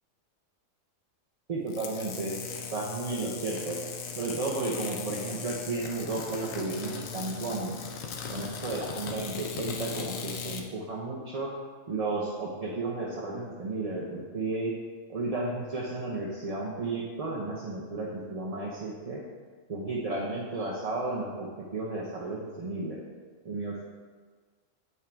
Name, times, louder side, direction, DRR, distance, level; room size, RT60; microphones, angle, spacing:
voice 1, 1.5-2.4 2.7-3.8 4.2-7.8 8.3-11.5 11.9-14.7 15.1-19.2 19.7-23.0 23.4-23.8, right 2 dB, 35° right, -5 dB, 0.6 m, -33 dB
sound 1, 1.7-10.6, left 6 dB, 80° left, 1.1 m, -38 dB
8.3 x 3.6 x 4.4 m, 1.5 s
omnidirectional pair, 1.4 m